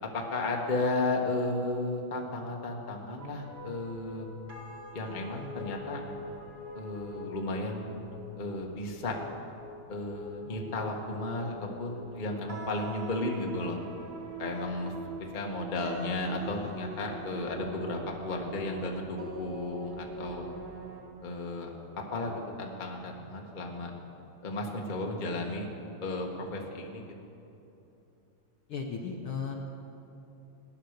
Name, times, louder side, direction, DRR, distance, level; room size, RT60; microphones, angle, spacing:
voice 1, 0.0-4.4 4.9-6.0 6.7-8.1 8.4-9.2 9.9-13.8 14.4-14.9 15.2-20.5 21.2-23.9 24.4-25.7 26.0-27.1, left 2 dB, 45° left, 0 dB, 0.6 m, -34 dB
sound 1, 3.2-21.0, right 1 dB, 40° right, 2.0 m, -44 dB
voice 2, 28.7-29.6, left 5 dB, 70° left, 2 dB, 1.4 m, -35 dB
17.5 x 10.0 x 6.5 m, 2.9 s
omnidirectional pair, 3.3 m